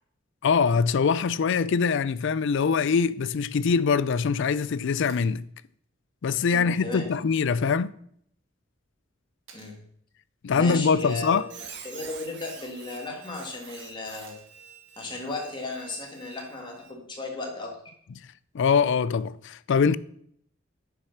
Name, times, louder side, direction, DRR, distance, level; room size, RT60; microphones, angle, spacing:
voice 1, 0.4-5.4 6.2-7.9 10.4-11.5 18.5-20.0, left 5 dB, 65° left, 0.4 m, -23 dB
sound 1, 5.1-5.4 7.6-7.7 9.5-9.8 11.8-12.2 14.2-14.7 16.8-16.9, right 5 dB, 75° right, 2.3 m, -54 dB
voice 2, 6.5-7.1 9.5-9.7 10.5-11.5 11.8-14.3 15.0-17.7, left 2 dB, 25° left, 1.8 m, -35 dB
Squeak, 11.0-16.9, right 6 dB, 60° right, 1.6 m, -46 dB
9.8 x 5.8 x 5.8 m
head